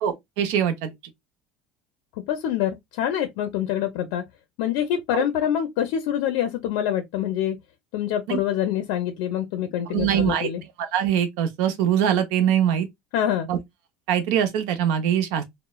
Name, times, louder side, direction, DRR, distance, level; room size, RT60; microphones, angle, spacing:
voice 1, 0.0-0.9 5.1-5.2 8.3-8.4 9.9-10.5 10.8-12.9 13.5-13.6 14.1-15.4, right 9 dB, 70° right, 0.5 m, -23 dB
voice 2, 2.3-4.2 4.6-7.6 7.9-10.6 13.1-13.5, left 10 dB, 75° left, 0.4 m, -25 dB
3.0 x 2.0 x 2.2 m
cardioid pair, 165°, 0 cm